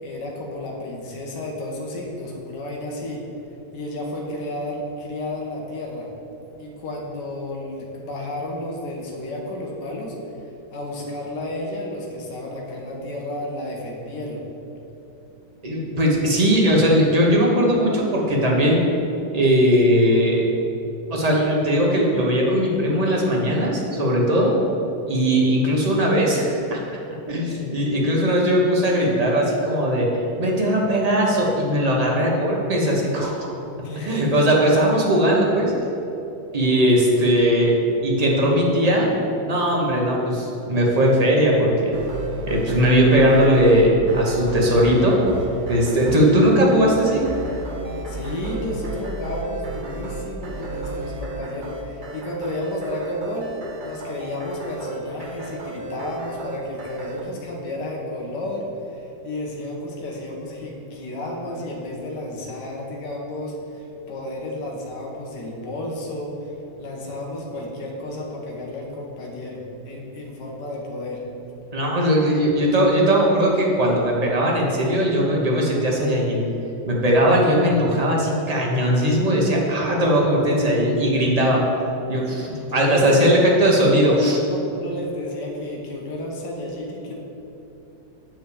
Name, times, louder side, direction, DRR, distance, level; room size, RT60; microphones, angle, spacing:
voice 1, 0.0-3.2 3.7-6.1 6.6-10.2 10.7-14.4 33.8-34.4 48.1-53.5 53.8-66.5 66.8-71.2 82.7-83.6 83.9-87.2, left 1 dB, 65° left, -1 dB, 1.7 m, -32 dB
voice 2, 15.6-18.8 19.3-20.5 21.1-24.5 25.1-26.8 27.3-30.1 30.4-33.5 34.0-35.7 36.5-37.7 38.0-39.1 39.4-41.9 42.5-45.2 45.7-47.2 71.7-76.4 76.9-81.6 82.1-84.4, equal, 25° right, -3 dB, 1.2 m, -19 dB
sound 1, 41.9-57.2, right 3 dB, 55° right, 0.5 m, -33 dB
7.9 x 4.6 x 7.0 m, 3.0 s
omnidirectional pair, 2.0 m